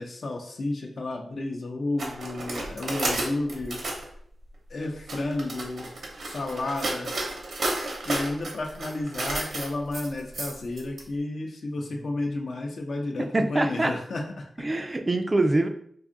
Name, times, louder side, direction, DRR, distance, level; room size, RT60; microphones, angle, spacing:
voice 1, 0.0-3.8 4.7-5.9 6.2-7.2 8.0-14.4, left 2 dB, 65° left, 2 dB, 0.6 m, -32 dB
sound 1, 2.0-4.1 4.8-11.0, right 2 dB, 70° right, 0.7 m, -32 dB
voice 2, 13.2-13.9 14.6-15.7, right 2 dB, 25° right, 6 dB, 0.3 m, -24 dB
2.6 x 2.4 x 3.7 m, 0.65 s
wide cardioid pair, 85°, 0 cm